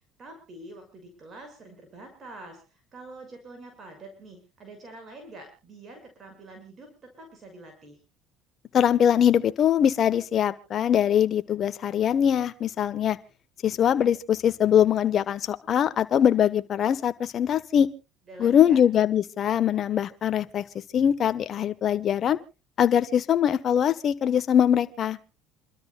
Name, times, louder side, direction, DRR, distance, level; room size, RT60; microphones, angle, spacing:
voice 1, 0.2-8.0 18.3-18.8, right 2 dB, 35° right, 6.3 m, -46 dB
voice 2, 8.7-13.2 13.6-17.9 18.4-20.6 20.9-22.4 22.8-25.2, left 9 dB, 45° left, 1.3 m, -22 dB
28.5 x 13.0 x 2.4 m
supercardioid pair, 90°, 0 cm